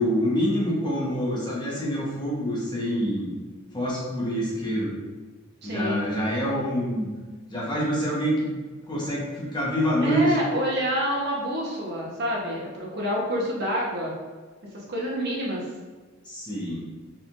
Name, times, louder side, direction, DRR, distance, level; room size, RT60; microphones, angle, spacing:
voice 1, 0.0-3.3 3.7-4.9 5.6-7.1 7.5-8.5 8.9-10.4 16.2-16.8, equal, 20° left, -6 dB, 1.1 m, -26 dB
voice 2, 5.6-6.0 10.0-14.1 14.7-15.7, equal, 55° right, -4 dB, 1.0 m, -27 dB
4.6 x 3.6 x 2.5 m, 1.4 s
head